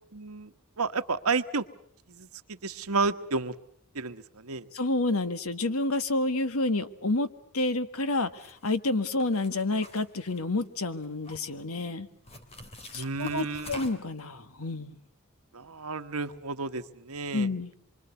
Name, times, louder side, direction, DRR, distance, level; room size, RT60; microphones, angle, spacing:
voice 1, 0.1-1.6 2.1-3.5 3.9-4.7 12.9-13.9 15.5-17.5, right 4 dB, 85° right, 10 dB, 1.3 m, -31 dB
voice 2, 4.7-7.3 7.5-12.1 12.9-15.0 17.3-17.7, left 2 dB, 80° left, 11 dB, 1.6 m, -29 dB
sound 1, 8.3-8.7 9.2-10.7 11.0-11.6 12.3-14.2, left 1 dB, 30° left, 3.3 m, -46 dB
26.0 x 24.5 x 8.3 m, 0.68 s
head